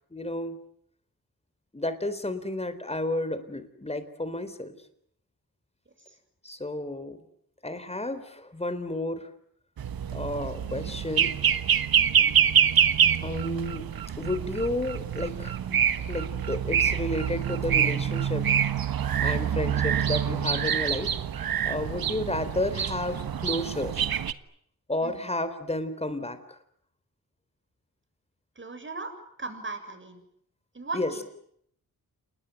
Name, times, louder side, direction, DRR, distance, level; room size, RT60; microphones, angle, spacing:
voice 1, 0.1-0.6 1.7-4.7 6.4-7.2 7.6-9.3 10.1-11.3 13.2-13.9 14.2-18.5 19.2-21.1 21.6-24.0 24.9-26.6 30.9-31.1, left 1 dB, 15° left, 12 dB, 4.0 m, -32 dB
sound 1, 9.8-24.3, right 8 dB, 75° right, 1.4 m, -26 dB
voice 2, 10.7-11.0 19.3-19.7 21.7-22.0 25.0-25.3 28.6-29.1 29.4-30.2 30.7-31.2, right 3 dB, 35° right, 8 dB, 7.3 m, -39 dB
29.0 x 20.5 x 9.4 m, 0.71 s
cardioid pair, 70°, 35 cm